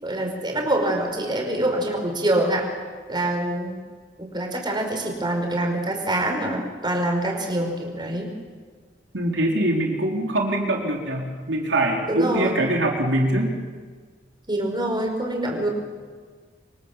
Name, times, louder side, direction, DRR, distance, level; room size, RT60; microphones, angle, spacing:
voice 1, 0.0-2.7 3.1-3.8 4.2-8.3 12.1-12.6 14.5-15.7, right 1 dB, 25° right, 2 dB, 5.3 m, -25 dB
voice 2, 9.1-13.6 15.5-15.7, right 1 dB, 90° right, 0 dB, 4.1 m, -23 dB
27.0 x 24.5 x 7.5 m, 1.6 s
head